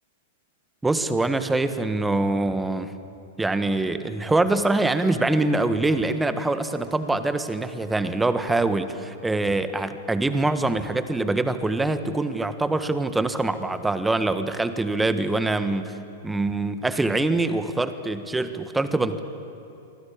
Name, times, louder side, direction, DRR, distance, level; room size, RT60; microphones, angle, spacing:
voice 1, 0.8-2.9 3.4-16.0 16.2-19.2, right 2 dB, 10° right, 11 dB, 1.5 m, -24 dB
28.0 x 24.0 x 8.6 m, 2.7 s
figure-of-eight pair, 100°, 0 cm